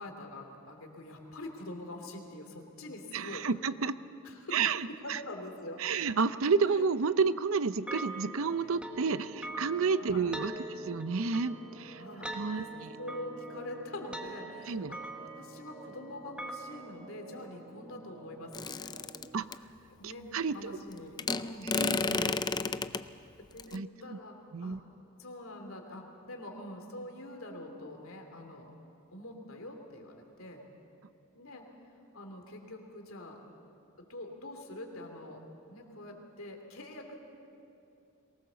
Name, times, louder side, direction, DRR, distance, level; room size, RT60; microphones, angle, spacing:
voice 1, 0.0-3.5 4.2-5.9 6.7-6.9 10.0-10.3 12.0-12.7 13.0-18.9 20.0-20.3 20.5-21.7 23.4-24.8 25.2-28.7 29.1-30.6 31.3-31.7 32.1-33.4 34.1-35.4 35.7-37.2, left 1 dB, 80° left, 3 dB, 2.8 m, -45 dB
voice 2, 3.1-4.0 4.5-5.2 5.8-12.0 12.3-12.6 14.7-14.9 19.3-19.5 20.0-20.8 21.7-22.4 23.7-24.2 24.5-24.8, right 5 dB, 75° right, 14 dB, 0.6 m, -31 dB
sound 1, 7.9-16.8, right 1 dB, 5° right, 1.2 m, -44 dB
sound 2, 8.4-19.5, right 2 dB, 35° right, 1.2 m, -50 dB
sound 3, 18.5-19.6 21.2-23.0 23.6-23.8, left 4 dB, 20° left, 0.4 m, -32 dB
23.0 x 19.5 x 6.9 m, 2.7 s
head